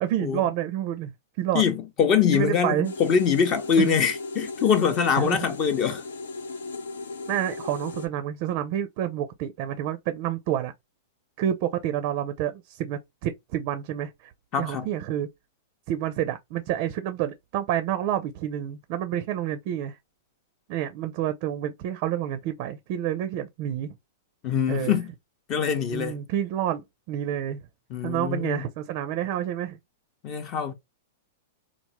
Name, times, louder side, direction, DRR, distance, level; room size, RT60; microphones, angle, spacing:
voice 1, 0.0-1.6 2.3-2.9 3.8-4.0 5.2-5.5 7.3-10.7 11.4-14.3 14.6-15.3 15.9-20.0 20.7-24.0 24.7-25.0 25.9-27.6 28.0-29.8, right 11 dB, 50° right, 0.4 m, -29 dB
voice 2, 1.5-6.0 14.5-14.9 24.4-25.1 25.5-26.2 27.9-28.7 30.2-30.7, left 7 dB, 40° left, 0.6 m, -23 dB
sound 1, 2.8-8.1, left 3 dB, 85° left, 0.5 m, -36 dB
3.1 x 2.0 x 2.9 m
hypercardioid pair, 125°, 0 cm